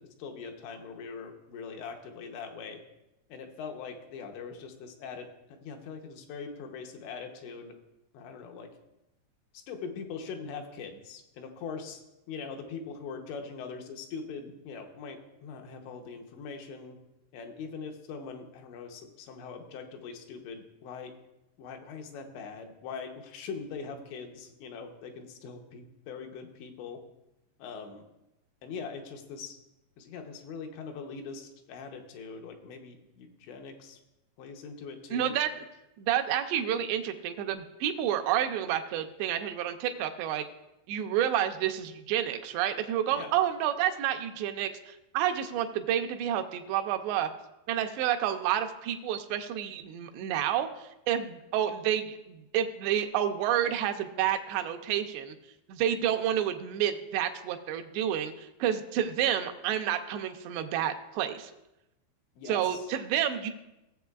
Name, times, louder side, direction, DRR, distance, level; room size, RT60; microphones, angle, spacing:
voice 1, 0.0-2.8 3.3-7.8 8.1-8.7 9.5-12.0 12.3-17.0 17.3-21.1 21.6-27.0 27.6-28.1 28.6-29.6 30.0-34.0 34.4-35.3 43.1-43.3 62.4-62.9, left 5 dB, 85° left, 4 dB, 3.1 m, -42 dB
voice 2, 35.1-35.6 36.0-40.4 40.9-47.3 47.7-55.4 55.7-61.5 62.5-63.5, right 10 dB, 85° right, 6 dB, 2.8 m, -29 dB
17.5 x 7.4 x 2.3 m, 0.93 s
omnidirectional pair, 4.9 m